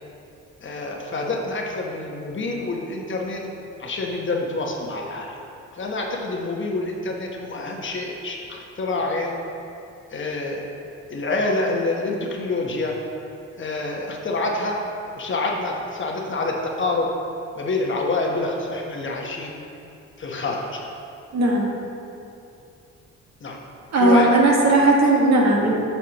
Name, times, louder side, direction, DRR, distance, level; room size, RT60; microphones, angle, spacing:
voice 1, 0.6-3.5 3.8-5.4 5.7-9.4 10.1-10.7 11.1-13.0 13.6-14.8 15.1-17.1 17.6-19.6 20.2-20.8 23.4-23.6 23.9-24.3, left 2 dB, 40° left, 0 dB, 1.0 m, -27 dB
voice 2, 21.3-21.7 23.9-25.7, right 2 dB, 60° right, -2 dB, 1.4 m, -17 dB
8.6 x 5.9 x 2.9 m, 2.6 s
cardioid pair, 90°, 30 cm